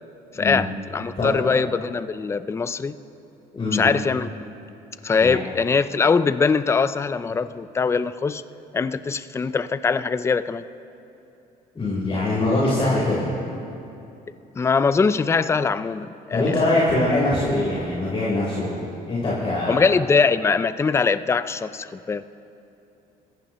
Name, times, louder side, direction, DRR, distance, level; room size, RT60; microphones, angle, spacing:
voice 1, 0.3-3.0 3.5-4.3 5.0-8.4 8.7-10.6 11.8-11.9 14.6-16.6 19.7-22.2, left 5 dB, 15° left, 14 dB, 0.4 m, -22 dB
voice 2, 11.8-13.3 16.3-18.8 19.1-19.8, left 2 dB, 35° left, -7 dB, 3.8 m, -22 dB
24.5 x 14.5 x 3.0 m, 2.8 s
cardioid pair, 110°, 17 cm